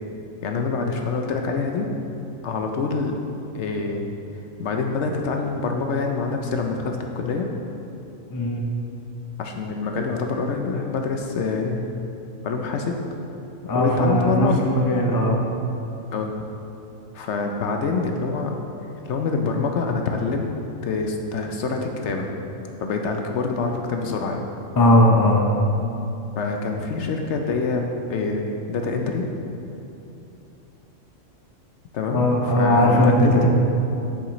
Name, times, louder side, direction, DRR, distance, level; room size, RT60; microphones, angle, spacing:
voice 1, 0.4-1.9 2.4-3.1 3.5-4.1 4.6-7.5 9.4-11.8 12.4-12.9 13.7-14.6 16.1-16.3 17.1-18.5 19.0-20.5 20.8-22.3 22.8-24.5 26.4-29.2 31.9-33.5, left 4 dB, 65° left, 3 dB, 0.8 m, -26 dB
voice 2, 8.3-8.6 13.7-15.4 24.8-25.5 32.1-33.5, left 1 dB, 25° left, 0 dB, 0.4 m, -18 dB
7.4 x 7.1 x 3.0 m, 2.8 s
omnidirectional pair, 1.4 m